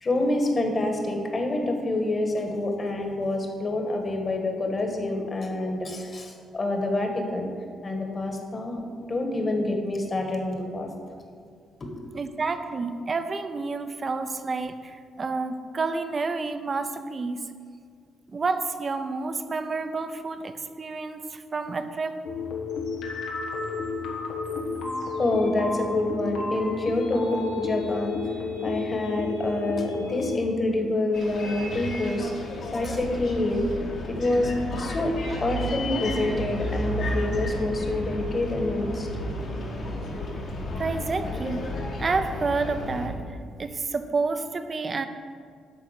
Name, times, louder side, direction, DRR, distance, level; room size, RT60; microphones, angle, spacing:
voice 1, 0.0-7.5 7.8-8.8 9.1-10.9 11.8-11.9 25.2-28.2 28.6-32.3 32.7-33.8 34.1-35.1 35.4-39.1, left 2 dB, 35° left, 3 dB, 1.7 m, -27 dB
voice 2, 12.1-17.4 18.3-22.2 40.8-41.6 42.0-45.1, right 4 dB, 35° right, 9 dB, 0.7 m, -29 dB
sound 1, 22.2-30.4, left 4 dB, 90° left, 1.4 m, -31 dB
Bus, 31.1-43.1, left 1 dB, 60° left, 2.0 m, -32 dB
11.0 x 4.1 x 7.6 m, 2.1 s
cardioid pair, 90°, 0 cm